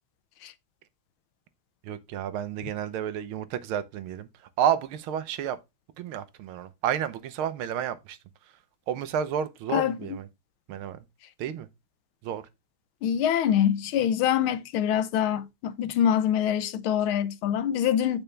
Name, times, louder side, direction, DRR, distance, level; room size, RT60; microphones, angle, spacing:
voice 1, 1.8-4.3 4.6-5.6 6.0-8.2 8.9-10.3 10.7-11.0 11.4-11.7 12.2-12.4, right 9 dB, 80° right, 1.7 m, -30 dB
voice 2, 9.7-10.2 13.0-18.2, left 9 dB, 80° left, 1.6 m, -25 dB
8.8 x 5.6 x 3.3 m
omnidirectional pair, 2.3 m